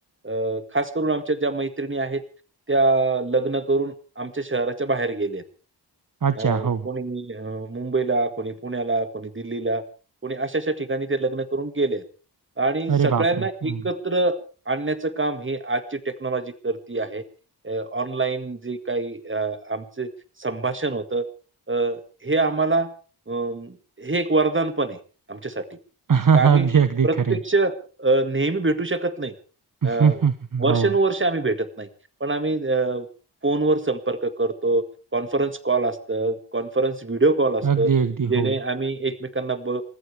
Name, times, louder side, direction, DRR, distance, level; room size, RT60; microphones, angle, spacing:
voice 1, 0.2-2.2 2.7-5.4 6.4-9.8 10.2-12.0 12.6-14.4 14.7-17.2 17.6-20.1 20.4-21.3 21.7-22.9 23.3-25.0 25.3-25.6 26.3-26.7 27.0-29.3 29.8-30.2 30.6-31.9 32.2-33.1 33.4-34.8 35.1-37.9 38.3-39.8, right 3 dB, 30° right, 10 dB, 2.0 m, -25 dB
voice 2, 6.2-6.8 12.9-13.2 13.6-13.8 26.1-27.4 29.8-30.9 37.6-38.5, right 6 dB, 50° right, 12 dB, 1.0 m, -20 dB
28.5 x 14.0 x 3.5 m, 0.37 s
wide cardioid pair, 75°, 42 cm